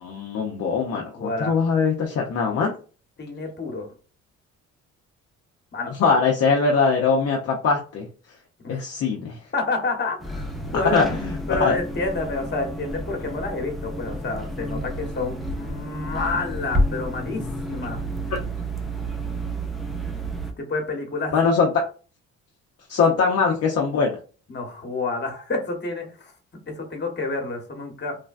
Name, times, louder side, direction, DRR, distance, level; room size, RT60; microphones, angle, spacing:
voice 1, 0.0-2.7 6.0-8.1 8.7-9.4 10.7-11.4 11.6-11.7 21.3-21.7 22.9-24.2, left 5 dB, 55° left, 0 dB, 0.6 m, -21 dB
voice 2, 1.1-1.5 3.2-3.9 5.7-6.0 8.6-8.8 9.5-10.5 10.7-11.0 11.5-18.0 20.6-21.3 24.5-26.3 26.7-28.2, left 3 dB, 35° left, 2 dB, 1.1 m, -29 dB
sound 1, 10.2-20.5, right 1 dB, ahead, 0.6 m, -30 dB
3.2 x 2.2 x 2.4 m, 0.37 s
cardioid pair, 90°, 30 cm